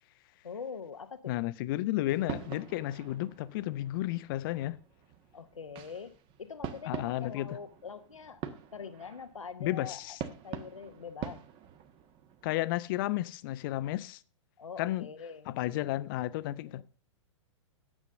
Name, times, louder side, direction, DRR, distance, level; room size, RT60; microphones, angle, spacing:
voice 1, 0.4-1.3 5.3-8.4 8.7-10.2 10.4-11.4 14.6-16.0 16.7-16.8, left 6 dB, 80° left, 0.8 m, -44 dB
voice 2, 1.3-4.8 6.9-7.6 9.6-10.2 12.4-14.2 14.8-15.1 15.5-16.8, left 16 dB, 45° left, 0.6 m, -32 dB
sound 1, 2.1-12.6, right 9 dB, 30° right, 1.3 m, -45 dB
9.7 x 7.4 x 6.4 m
figure-of-eight pair, 105°, 16 cm